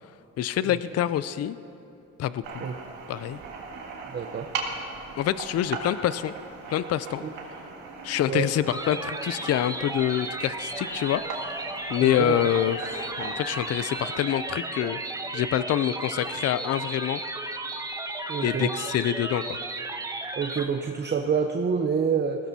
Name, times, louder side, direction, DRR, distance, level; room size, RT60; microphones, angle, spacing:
voice 1, 0.4-1.6 2.2-2.7 3.1-3.4 5.2-6.3 6.7-7.2 8.0-11.2 11.9-15.0 15.3-17.2 18.4-19.6, left 11 dB, 55° left, 15 dB, 0.5 m, -26 dB
sound 1, 2.4-14.4, right 4 dB, 85° right, 1.9 m, -39 dB
voice 2, 4.1-4.5 8.3-8.5 12.0-12.4 18.3-18.7 20.4-22.5, right 6 dB, 35° right, 4 dB, 0.7 m, -27 dB
sound 2, 8.7-20.7, right 2 dB, 10° right, 1.0 m, -34 dB
20.0 x 16.0 x 2.8 m, 2.9 s
cardioid pair, 90°, 30 cm